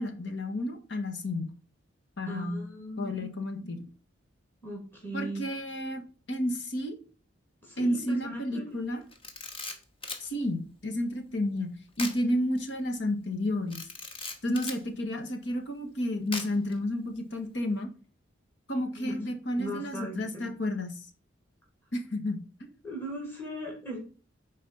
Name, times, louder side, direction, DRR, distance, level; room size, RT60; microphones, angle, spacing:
voice 1, 0.0-1.5 2.2-2.6 3.0-3.8 5.1-6.0 6.3-7.0 7.8-9.0 10.2-11.7 12.0-13.8 14.4-17.9 18.7-21.1 21.9-22.7, left 1 dB, 65° left, 5 dB, 1.6 m, -31 dB
voice 2, 2.3-3.8 4.6-5.5 7.6-9.0 18.9-19.2 19.6-20.5 22.8-24.0, right 1 dB, 10° left, -1 dB, 2.7 m, -39 dB
Camera, 9.1-10.3 12.0-12.2 12.6-12.7 13.7-14.8 16.3-16.7, left 3 dB, 30° left, 1.3 m, -38 dB
9.5 x 4.3 x 5.5 m, 0.38 s
head